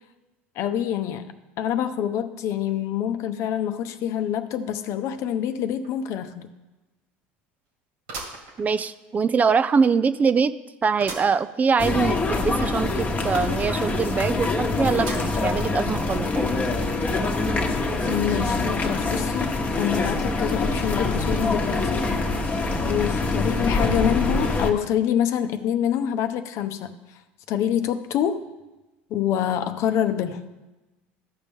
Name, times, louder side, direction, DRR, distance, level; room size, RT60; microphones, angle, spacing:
voice 1, 0.6-6.5 18.0-22.1 22.8-27.2 27.5-28.5 29.1-30.5, left 9 dB, 60° left, 9 dB, 0.7 m, -26 dB
sound 1, 5.8-5.9 6.4-6.5 8.1-9.2 9.7-9.8 11.0-11.4 11.8-11.9 12.1-12.2 15.0-15.6 16.2-16.3 17.3-17.4, right 3 dB, 75° right, 2.1 m, -37 dB
voice 2, 8.6-10.5 10.8-16.5, right 5 dB, 25° right, 13 dB, 0.4 m, -23 dB
sound 2, 11.8-24.7, left 3 dB, 25° left, 1.1 m, -25 dB
14.0 x 5.3 x 3.6 m, 1.1 s
hypercardioid pair, 85°, 6 cm